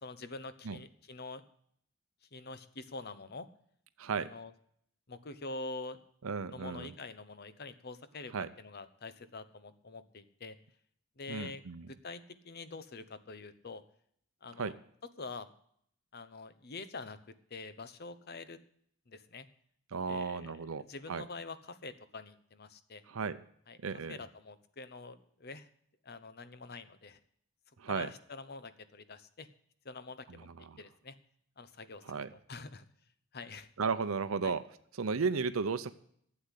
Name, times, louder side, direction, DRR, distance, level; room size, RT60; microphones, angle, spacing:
voice 1, 0.0-1.4 2.3-3.5 4.1-4.5 5.1-6.0 6.5-10.5 11.2-13.8 14.4-14.7 15.2-15.5 16.1-17.2 17.5-18.6 19.1-19.5 20.1-23.0 23.7-23.8 24.1-25.7 26.0-27.2 27.9-29.5 29.8-31.2 31.6-32.2 32.5-32.8 33.3-33.7 34.4-34.5, left 3 dB, 50° left, 12 dB, 0.9 m, -46 dB
voice 2, 4.0-4.3 6.2-6.9 8.3-8.5 11.3-11.9 14.6-14.7 19.9-21.2 23.1-23.4 23.8-24.2 27.8-28.1 30.3-30.8 32.0-32.3 33.8-34.6 34.9-35.9, right 5 dB, 80° right, 12 dB, 0.6 m, -34 dB
12.0 x 8.0 x 8.1 m, 0.66 s
head